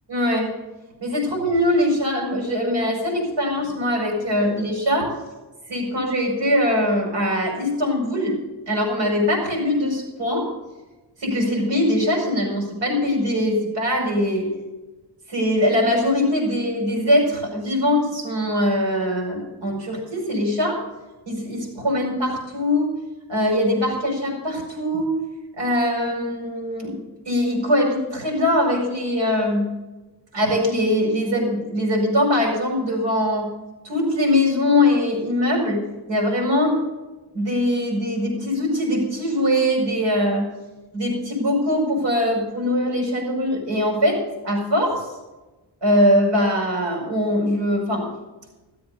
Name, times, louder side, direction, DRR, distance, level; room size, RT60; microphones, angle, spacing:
voice 1, 0.1-0.5 1.0-5.1 5.7-8.4 8.7-10.5 11.2-14.5 15.3-20.8 21.2-22.9 23.3-25.2 25.6-27.0 27.3-29.7 30.3-33.5 33.8-36.8 37.3-40.5 40.9-45.1 45.8-48.1, left 1 dB, 85° right, 0 dB, 5.7 m, -22 dB
14.0 x 7.8 x 6.8 m, 1.1 s
wide cardioid pair, 100°, 41 cm